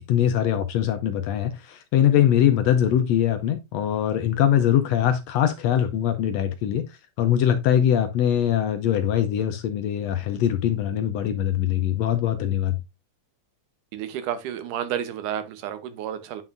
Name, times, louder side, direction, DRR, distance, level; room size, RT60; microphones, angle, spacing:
voice 1, 0.1-6.9 7.2-12.8, left 10 dB, 75° left, 1.6 m, -22 dB
voice 2, 13.9-16.4, right 10 dB, 90° right, 2.5 m, -31 dB
9.0 x 5.8 x 2.5 m
omnidirectional pair, 3.5 m